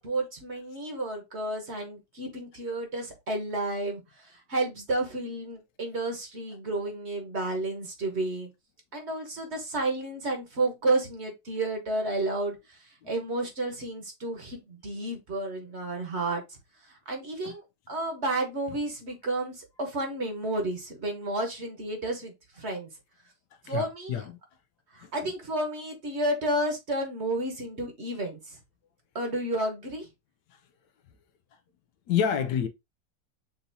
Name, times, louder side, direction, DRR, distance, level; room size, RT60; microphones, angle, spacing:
voice 1, 0.0-8.5 8.9-12.8 13.0-16.4 16.9-17.6 17.9-22.9 23.6-24.2 24.9-28.6 29.1-30.1, right 2 dB, 45° right, 1.3 m, -31 dB
voice 2, 23.7-24.3 25.0-25.1 32.1-32.7, left 8 dB, 80° left, 1.2 m, -28 dB
6.7 x 2.7 x 2.7 m
omnidirectional pair, 1.8 m